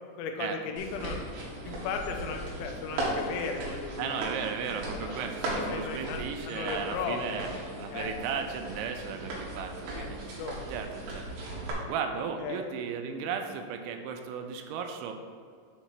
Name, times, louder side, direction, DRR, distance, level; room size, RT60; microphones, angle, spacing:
voice 1, 0.2-1.2 1.7-4.2 4.7-7.5 7.9-8.1 10.0-10.1 10.4-10.7 12.4-12.7, left 5 dB, 85° left, 4 dB, 3.1 m, -36 dB
sound 1, 0.8-11.7, right 1 dB, 70° right, 3.3 m, -37 dB
voice 2, 4.0-7.5 7.8-10.2 10.7-11.3 11.9-15.2, right 6 dB, 85° right, 6 dB, 3.0 m, -35 dB
7.8 x 3.1 x 5.8 m, 2.1 s
omnidirectional pair, 5.4 m